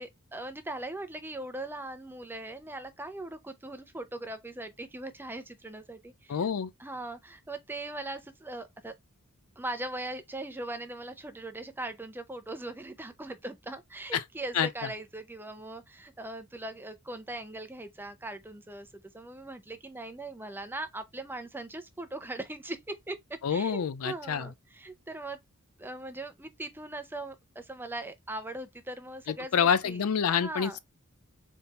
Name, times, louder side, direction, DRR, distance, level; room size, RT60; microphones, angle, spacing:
voice 1, 0.0-6.4 6.8-8.9 9.6-25.4 25.8-30.0 30.4-30.8, right 2 dB, 10° right, 0.6 m, -40 dB
voice 2, 6.3-6.7 14.1-14.2 14.5-14.7 23.4-24.5 29.3-30.8, left 7 dB, 80° left, 0.4 m, -27 dB
4.2 x 3.6 x 2.4 m
head